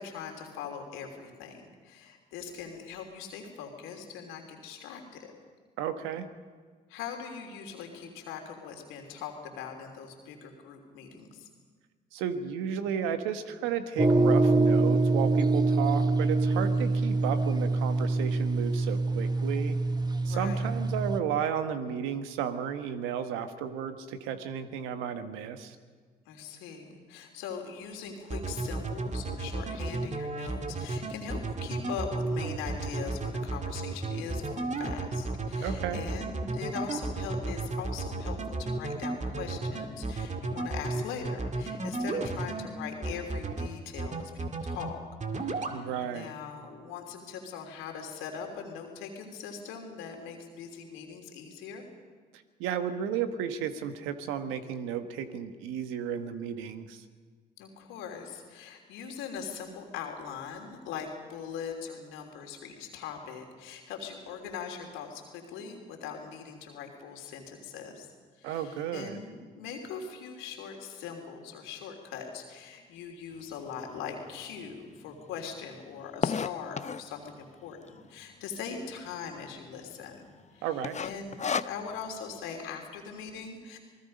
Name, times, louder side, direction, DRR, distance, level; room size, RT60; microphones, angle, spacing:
voice 1, 0.0-5.3 6.9-11.5 16.6-17.0 20.2-20.6 26.2-45.0 45.3-51.8 57.6-68.1 68.4-80.2 80.5-80.7 81.0-83.8, left 6 dB, 80° left, 3 dB, 3.2 m, -41 dB
voice 2, 5.8-6.3 12.1-19.8 20.2-25.8 35.6-36.0 45.7-46.3 52.3-57.0 68.4-69.2 80.6-81.0, right 8 dB, 80° right, 9 dB, 1.4 m, -33 dB
sound 1, 14.0-21.2, right 3 dB, 20° right, 1.1 m, -25 dB
sound 2, 28.3-42.7 43.0-43.7 44.0-44.9 45.2-45.8, right 3 dB, 35° right, 2.2 m, -33 dB
sound 3, 73.7-73.8 74.4-74.5 74.7-74.8 75.0-77.2 77.8-78.2 78.6-78.7 78.9-79.0 79.5-79.9 80.2-80.4 80.8-82.1, left 6 dB, 35° left, 0.8 m, -32 dB
27.5 x 19.5 x 5.3 m, 1.5 s
hypercardioid pair, 55°, 20 cm